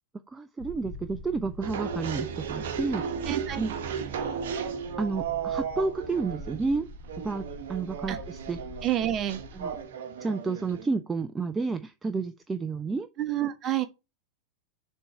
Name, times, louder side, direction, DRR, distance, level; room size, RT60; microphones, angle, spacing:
voice 1, 0.3-3.1 3.6-3.7 5.0-6.9 7.2-8.6 9.5-9.7 10.2-13.1, right 4 dB, 15° right, 0.4 m, -31 dB
sound 1, 0.6-9.9, left 1 dB, 20° left, 2.9 m, -45 dB
sound 2, 1.6-10.9, right 7 dB, 55° right, 1.0 m, -35 dB
voice 2, 3.3-3.7 8.1-8.2 8.8-9.4 13.2-13.9, right 12 dB, 30° right, 1.0 m, -28 dB
6.8 x 3.7 x 4.4 m
figure-of-eight pair, 90°, 0 cm